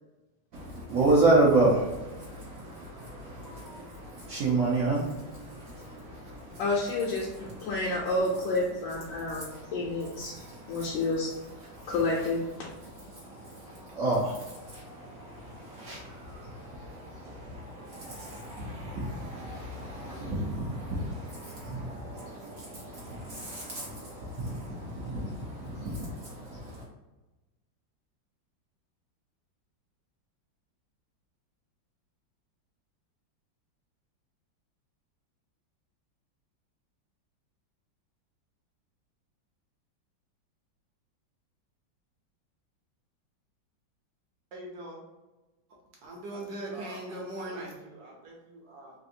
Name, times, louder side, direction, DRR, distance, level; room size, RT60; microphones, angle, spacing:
voice 1, 0.5-6.6 7.5-7.8 9.1-11.1 11.6-12.3 12.8-26.8, right 2 dB, 80° right, -4 dB, 0.7 m, -31 dB
voice 2, 6.6-10.3 10.7-11.3 11.9-12.4, left 2 dB, 75° left, -4 dB, 1.2 m, -29 dB
voice 3, 44.5-45.0 46.0-48.9, right 1 dB, 65° right, -2 dB, 1.1 m, -40 dB
3.4 x 2.4 x 2.6 m, 1.1 s
omnidirectional pair, 2.1 m